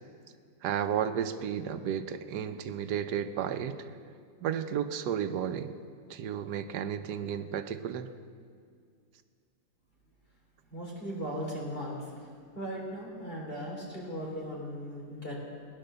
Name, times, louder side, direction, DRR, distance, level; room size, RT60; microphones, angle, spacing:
voice 1, 0.6-3.8 4.4-5.7 6.1-8.1, right 9 dB, 90° right, 9 dB, 1.3 m, -33 dB
voice 2, 10.7-12.3 12.5-15.4, equal, 35° left, -3 dB, 3.6 m, -38 dB
19.0 x 9.8 x 6.8 m, 2.1 s
omnidirectional pair, 1.7 m